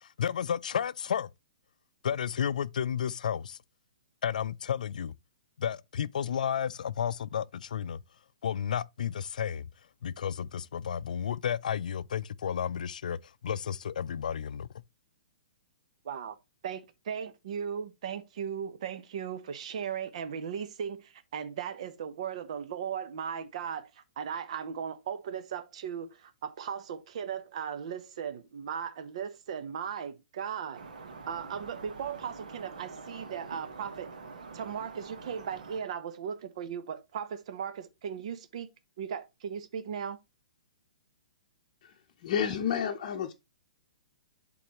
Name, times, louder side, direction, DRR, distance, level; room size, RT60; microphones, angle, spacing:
voice 1, 0.0-1.3 2.0-3.6 4.2-5.1 5.6-8.0 8.4-9.7 10.0-14.7, left 8 dB, 75° left, 0.4 m, -32 dB
voice 2, 16.0-16.4 16.6-30.8 31.3-34.1 34.5-38.7 39.0-40.2, right 7 dB, 50° right, 0.8 m, -37 dB
sound 1, 30.7-35.8, right 4 dB, 75° right, 1.5 m, -46 dB
voice 3, 42.2-43.3, left 8 dB, 40° left, 0.9 m, -30 dB
11.0 x 3.9 x 3.0 m
hypercardioid pair, 165°, 4 cm